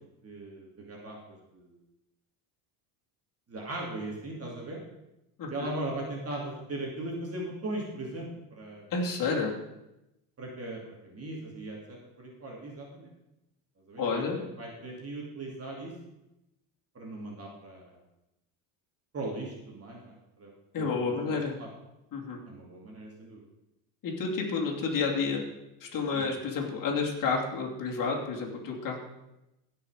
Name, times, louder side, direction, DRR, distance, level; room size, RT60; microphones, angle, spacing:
voice 1, 0.2-1.7 3.5-4.8 5.5-8.8 10.4-13.1 13.9-15.9 16.9-18.0 19.1-20.5 20.8-21.7 22.5-23.4 26.1-26.3, right 2 dB, 30° right, -2 dB, 2.8 m, -39 dB
voice 2, 5.4-5.7 8.9-9.6 14.0-14.4 20.7-21.5 22.1-22.4 24.0-25.4 25.8-29.0, left 4 dB, 45° left, -2 dB, 2.8 m, -30 dB
16.5 x 5.8 x 4.9 m, 0.92 s
supercardioid pair, 105°, 47 cm